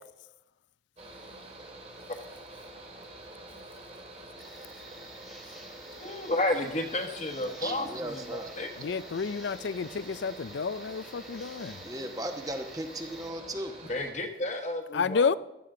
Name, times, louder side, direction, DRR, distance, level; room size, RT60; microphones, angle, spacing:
Mechanical fan, 1.0-14.1, right 1 dB, 35° right, 2.1 m, -47 dB
sound 1, 4.4-13.3, equal, ahead, 1.8 m, -51 dB
voice 1, 6.0-8.7 13.9-15.4, left 1 dB, 40° left, 1.2 m, -32 dB
voice 2, 7.4-8.5 11.8-13.8, right 1 dB, 20° right, 1.1 m, -37 dB
voice 3, 8.8-11.8 14.9-15.4, left 5 dB, 80° left, 0.4 m, -30 dB
15.5 x 12.5 x 3.8 m
head